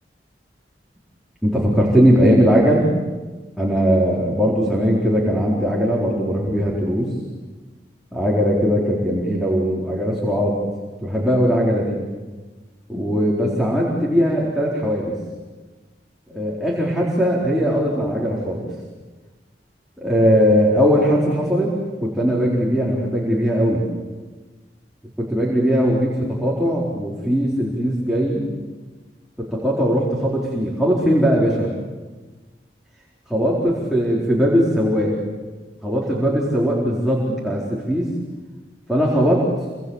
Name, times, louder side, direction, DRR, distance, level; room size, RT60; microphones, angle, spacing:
voice 1, 1.4-2.9 3.6-7.1 8.1-10.6 11.0-12.0 12.9-15.1 16.3-18.7 20.0-21.7 22.0-23.8 25.2-28.4 29.4-31.7 33.3-35.1 35.8-38.1 38.9-39.5, equal, ahead, -5 dB, 4.4 m, -19 dB
28.5 x 26.0 x 7.4 m, 1.3 s
head